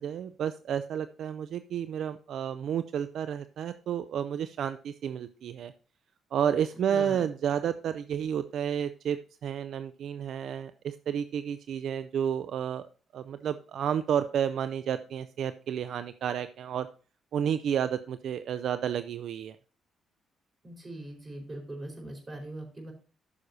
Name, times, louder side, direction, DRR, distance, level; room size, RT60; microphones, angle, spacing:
voice 1, 0.0-5.7 6.3-12.8 13.1-16.9 17.3-19.6, right 8 dB, 70° right, 11 dB, 0.4 m, -31 dB
voice 2, 6.8-7.2 20.6-22.9, right 1 dB, 30° right, 2 dB, 4.7 m, -41 dB
13.5 x 6.4 x 2.7 m, 0.37 s
cardioid pair, 75°, 0 cm